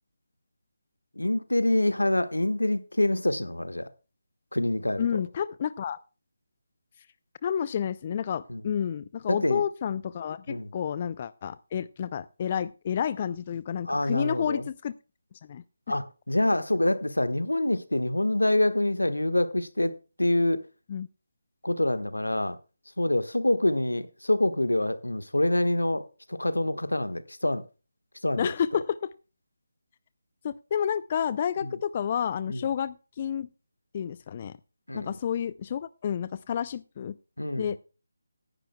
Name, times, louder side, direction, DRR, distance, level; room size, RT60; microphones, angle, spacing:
voice 1, 1.1-3.9 4.5-5.2 8.5-8.6 9.3-9.6 10.5-10.7 13.8-14.7 15.9-20.6 21.6-22.6 23.0-27.6 28.2-28.5 31.6-31.7 32.5-32.6 34.9-35.2 37.4-37.8, left 1 dB, 85° left, 1.4 m, -26 dB
voice 2, 5.0-6.0 7.4-14.9 15.5-15.6 20.9-21.1 28.4-29.0 30.4-33.5 33.9-34.6 34.9-37.2 37.6-37.8, left 8 dB, 30° left, 0.4 m, -30 dB
17.5 x 11.0 x 2.2 m
figure-of-eight pair, 155°, 0 cm